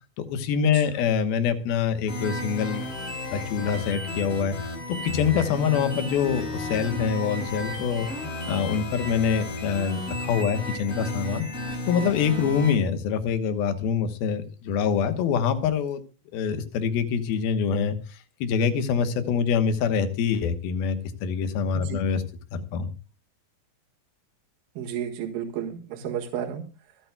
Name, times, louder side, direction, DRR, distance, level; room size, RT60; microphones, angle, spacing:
voice 1, 0.2-2.8 3.3-4.7 5.0-8.1 8.5-11.5 11.9-16.0 16.3-22.2 22.5-22.9, left 7 dB, 85° left, 9 dB, 3.1 m, -25 dB
sound 1, 2.1-12.7, left 1 dB, 50° left, 5.7 m, -33 dB
voice 2, 24.8-26.6, right 9 dB, 75° right, 2 dB, 3.4 m, -32 dB
25.0 x 9.0 x 2.3 m, 0.31 s
omnidirectional pair, 4.3 m